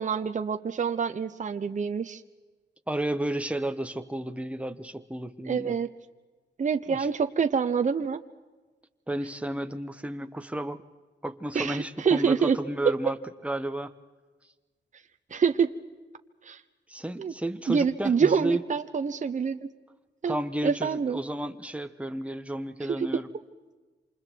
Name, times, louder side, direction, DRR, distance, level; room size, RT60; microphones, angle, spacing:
voice 1, 0.0-2.2 5.4-5.9 6.6-8.2 11.5-12.6 15.3-15.7 16.4-16.6 17.2-17.3 17.7-19.6 20.2-20.4 20.6-21.2 22.9-23.1, right 6 dB, 45° right, 8 dB, 0.9 m, -26 dB
voice 2, 2.9-5.8 6.9-7.1 9.1-10.8 11.2-13.2 13.4-13.9 16.9-18.6 20.3-23.3, right 1 dB, 5° right, 8 dB, 1.2 m, -32 dB
28.0 x 26.5 x 4.6 m, 1.3 s
wide cardioid pair, 135°, 18 cm